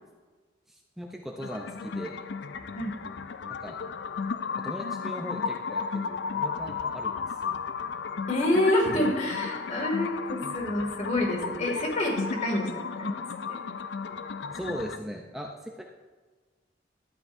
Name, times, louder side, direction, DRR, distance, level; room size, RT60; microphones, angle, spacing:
voice 1, 0.7-2.2 3.6-3.8 4.6-7.6 8.8-8.9 9.5-9.6 14.5-15.8, equal, ahead, 0 dB, 0.6 m, -39 dB
sound 1, 1.4-15.0, left 5 dB, 65° left, 0.4 m, -34 dB
voice 2, 8.3-12.2 12.4-12.7 12.9-13.1 13.5-13.6, left 1 dB, 40° left, 0 dB, 2.2 m, -27 dB
13.0 x 9.4 x 2.6 m, 1.4 s
head